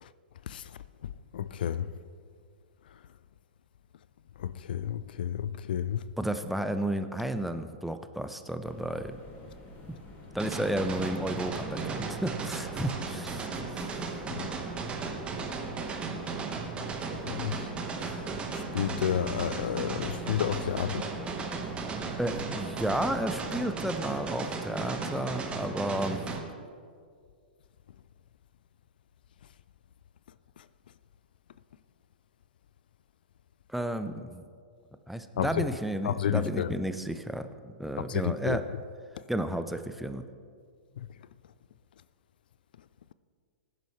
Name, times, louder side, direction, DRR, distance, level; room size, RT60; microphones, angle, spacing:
voice 1, 0.5-1.9 4.4-6.0 14.3-14.5 17.2-17.7 18.0-18.3 18.5-21.1 35.4-35.7 36.0-36.7 38.1-38.6 41.0-41.1, left 9 dB, 65° left, 0.4 m, -31 dB
voice 2, 6.2-9.2 10.3-14.0 22.2-26.2 33.7-34.4 35.1-38.6 39.3-40.2, right 1 dB, ahead, 0.6 m, -32 dB
sound 1, 8.6-23.6, left 2 dB, 35° left, 2.3 m, -49 dB
sound 2, 10.4-26.4, right 4 dB, 20° right, 1.4 m, -35 dB
19.5 x 10.5 x 3.3 m
hypercardioid pair, 110°, 5 cm